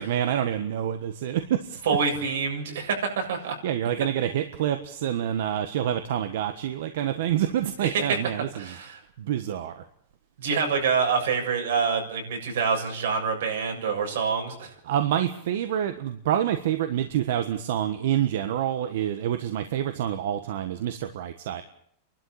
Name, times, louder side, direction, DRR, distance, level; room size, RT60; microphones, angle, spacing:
voice 1, 0.0-1.8 3.6-8.8 9.2-9.8 14.8-21.6, right 10 dB, 65° right, 8 dB, 1.4 m, -27 dB
voice 2, 1.9-3.6 7.8-9.0 10.4-14.7, right 5 dB, 85° right, 2 dB, 7.1 m, -26 dB
29.5 x 12.5 x 8.7 m, 0.69 s
supercardioid pair, 170°, 0 cm